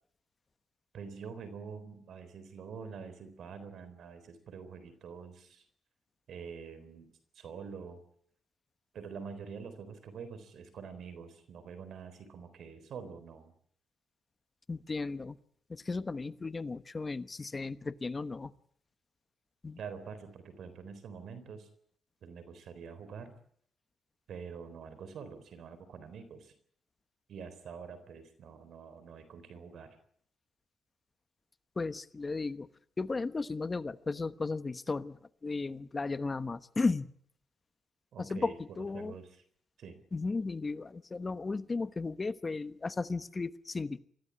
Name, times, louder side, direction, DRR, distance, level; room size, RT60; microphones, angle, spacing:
voice 1, 0.9-5.6 6.3-8.0 8.9-13.5 19.8-21.7 22.2-23.3 24.3-26.5 27.3-30.0 38.1-38.6 38.9-39.4 39.8-40.0, right 6 dB, 65° right, 12 dB, 4.0 m, -46 dB
voice 2, 14.7-15.4 15.7-18.5 19.6-19.8 31.8-32.7 33.0-37.1 38.2-39.1 40.1-44.0, left 3 dB, 25° left, 13 dB, 1.1 m, -35 dB
23.0 x 15.5 x 9.8 m, 0.65 s
cardioid pair, 90°, 0 cm